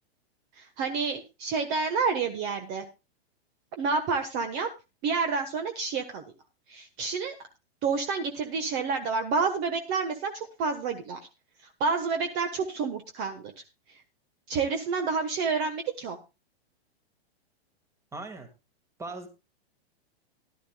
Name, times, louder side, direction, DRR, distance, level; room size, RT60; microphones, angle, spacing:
voice 1, 0.6-2.8 3.8-4.7 5.0-6.2 6.7-7.3 7.8-11.2 11.8-13.5 13.9-14.0 14.5-16.2, right 4 dB, 35° right, 7 dB, 1.3 m, -29 dB
voice 2, 18.1-18.5 19.0-19.3, right 3 dB, 10° right, 6 dB, 1.8 m, -38 dB
15.5 x 12.0 x 2.3 m, 0.27 s
hypercardioid pair, 150°, 32 cm